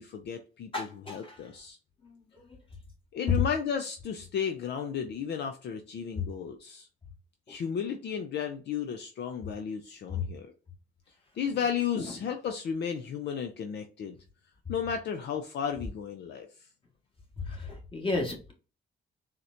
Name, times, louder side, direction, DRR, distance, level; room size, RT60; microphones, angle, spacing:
voice 1, 0.0-1.8 3.1-6.9 7.5-10.5 11.4-14.2 14.7-16.5, left 7 dB, 60° left, 6 dB, 0.5 m, -33 dB
voice 2, 0.7-1.5 2.0-2.2 2.5-2.6 3.3-3.4 6.2-6.3 7.5-7.6 10.1-10.2 11.9-12.1 17.4-18.5, left 4 dB, 25° left, -1 dB, 1.5 m, -33 dB
4.1 x 2.1 x 2.5 m, 0.35 s
cardioid pair, 90°, 20 cm